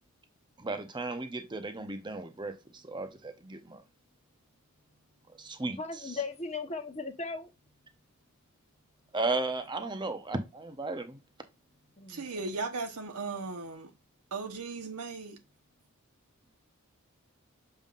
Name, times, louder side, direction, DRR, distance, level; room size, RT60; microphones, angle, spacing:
voice 1, 0.6-2.5 2.8-3.8 5.4-5.8 9.1-11.2, right 2 dB, 20° right, 0.8 m, -34 dB
voice 2, 5.8-7.5 12.0-12.6, left 4 dB, 30° left, 1.0 m, -38 dB
voice 3, 12.1-13.9 14.3-15.4, right 4 dB, 90° right, 1.1 m, -37 dB
6.9 x 5.4 x 2.5 m
head